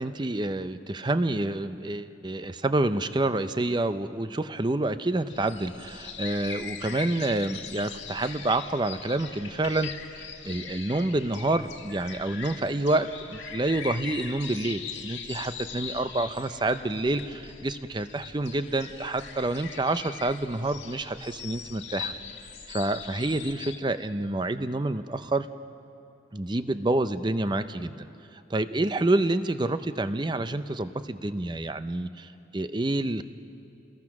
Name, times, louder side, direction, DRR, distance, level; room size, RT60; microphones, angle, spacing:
voice 1, 0.0-9.9 10.2-22.1 22.7-25.5 26.3-28.1 28.3-33.2, right 2 dB, 25° right, 11 dB, 0.6 m, -28 dB
sound 1, 5.3-23.8, left 6 dB, 80° left, 1.7 m, -41 dB
30.0 x 20.5 x 6.0 m, 2.8 s
head